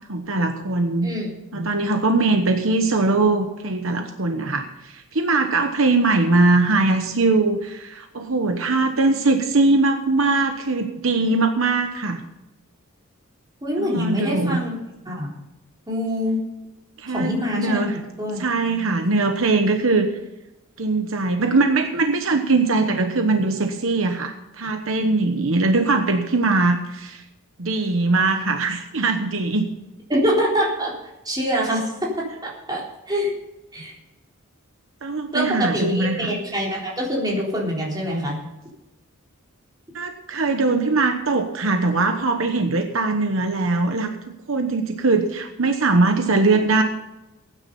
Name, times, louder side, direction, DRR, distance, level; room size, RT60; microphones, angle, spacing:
voice 1, 0.1-1.1 1.5-12.2 13.8-14.6 17.0-18.0 18.4-20.1 20.8-27.2 27.6-29.7 35.0-36.3 39.9-44.1 44.5-46.8, right 3 dB, 65° right, 5 dB, 1.1 m, -21 dB
voice 2, 1.0-1.7 13.6-14.7 15.1-15.3 15.9-16.4 17.1-17.9 18.2-18.4 30.1-30.9 31.2-33.3 33.7-33.9 35.3-38.4, equal, 20° right, -4 dB, 3.8 m, -25 dB
16.0 x 9.8 x 5.4 m, 0.98 s
head